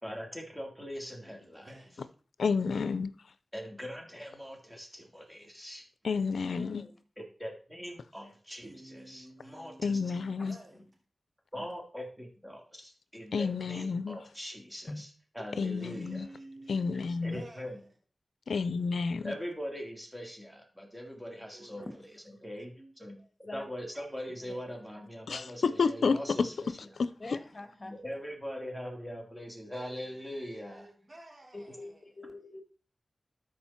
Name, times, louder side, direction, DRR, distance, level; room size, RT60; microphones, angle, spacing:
voice 1, 0.0-1.7 3.5-5.8 7.2-10.0 10.3-10.4 11.5-15.1 15.3-16.2 17.2-17.8 19.2-21.8 22.4-23.2 23.5-26.8 27.8-30.9, equal, 5° right, 3.3 m, -42 dB
voice 2, 1.2-2.1 6.0-6.3 8.6-10.9 15.8-17.9 21.5-22.0 22.8-22.9 27.6-27.7 29.7-32.0, right 1 dB, 45° right, 3.2 m, -52 dB
voice 3, 2.4-3.1 6.0-6.8 9.8-10.6 13.3-14.2 15.6-16.3 16.7-17.4 18.5-19.3 25.3-26.5 27.0-27.1, left 5 dB, 90° left, 0.5 m, -30 dB
voice 4, 6.1-7.0 10.4-10.8 11.6-11.7 14.9-15.0 16.9-17.0 17.3-17.4 21.8-22.0 23.2-23.7 24.5-24.6 27.2-28.2 31.5-32.6, left 2 dB, 45° left, 1.7 m, -45 dB
12.5 x 5.0 x 4.4 m
cardioid pair, 45°, 0 cm